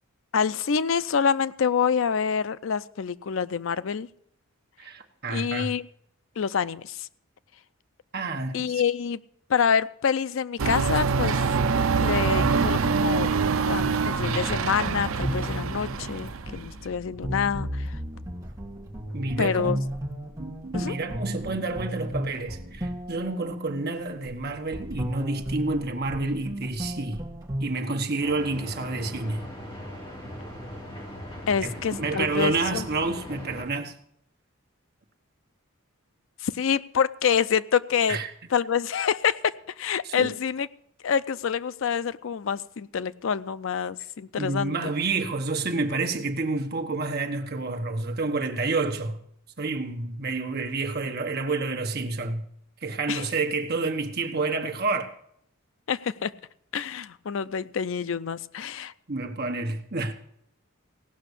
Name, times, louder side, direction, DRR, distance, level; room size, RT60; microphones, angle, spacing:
voice 1, 0.3-4.1 5.3-5.8 6.4-7.1 8.5-9.2 9.5-11.4 12.0-13.3 13.7-18.0 19.4-19.8 20.7-21.0 31.5-32.8 36.4-38.2 38.5-40.7 41.0-44.9 53.1-53.2 55.9-56.3 56.7-58.9, left 7 dB, 65° left, 0.4 m, -27 dB
voice 2, 4.8-5.7 8.1-8.8 19.1-19.8 20.4-27.2 27.6-29.4 31.6-33.9 38.1-38.3 40.0-40.3 44.4-49.2 49.6-52.4 52.8-55.1 59.1-60.1, right 3 dB, 50° right, 1.3 m, -29 dB
sound 1, 10.6-16.8, right 5 dB, 75° right, 0.5 m, -25 dB
sound 2, 12.3-27.7, equal, 15° right, 1.5 m, -34 dB
sound 3, 28.2-33.6, equal, 25° left, 3.8 m, -39 dB
17.0 x 6.0 x 8.2 m
head